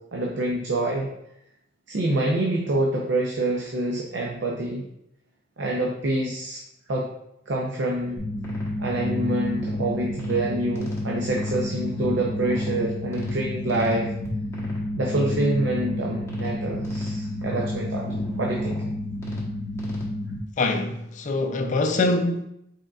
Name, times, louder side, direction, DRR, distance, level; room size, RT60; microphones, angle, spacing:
voice 1, 0.1-1.1 1.9-4.8 5.6-6.6 6.9-7.1 7.5-8.2 8.8-14.1 15.0-18.1 18.4-18.8, right 1 dB, 65° right, 0.6 m, -26 dB
sound 1, 8.2-20.4, left 1 dB, 15° left, 1.1 m, -30 dB
voice 2, 20.6-22.4, left 2 dB, 40° left, 0.4 m, -24 dB
4.9 x 4.4 x 2.4 m
head